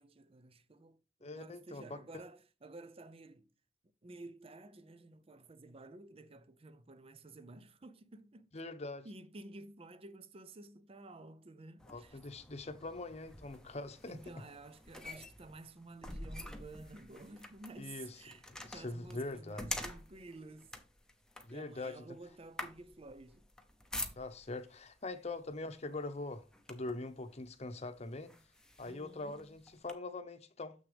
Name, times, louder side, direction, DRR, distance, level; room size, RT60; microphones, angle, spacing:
voice 1, 0.0-3.5 4.0-8.5 9.0-12.2 14.1-18.4 18.7-20.7 21.5-23.4 28.9-29.5, right 2 dB, 35° right, 0.6 m, -52 dB
voice 2, 1.2-2.0 8.5-9.1 11.9-14.2 17.8-18.2 18.6-19.7 21.5-22.1 24.2-28.3 28.8-30.7, left 2 dB, 40° left, 0.9 m, -43 dB
sound 1, 11.8-24.6 25.5-25.7 26.1-27.1 27.7-27.8 28.3-29.9, left 1 dB, 5° left, 0.8 m, -47 dB
7.0 x 6.3 x 3.4 m
head